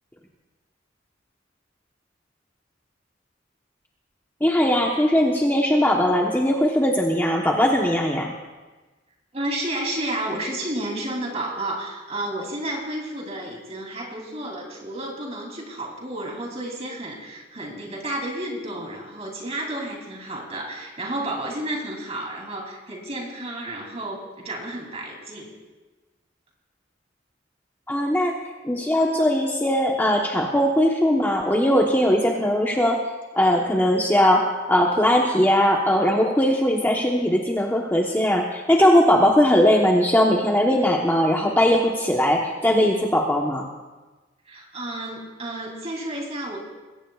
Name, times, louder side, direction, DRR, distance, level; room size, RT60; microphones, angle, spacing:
voice 1, 4.4-8.3 27.9-28.3 28.6-33.0 33.3-43.6, equal, 10° left, -1 dB, 1.1 m, -20 dB
voice 2, 9.3-25.5 44.4-46.6, right 1 dB, 35° right, 0 dB, 3.2 m, -31 dB
21.0 x 17.5 x 2.4 m, 1.2 s
head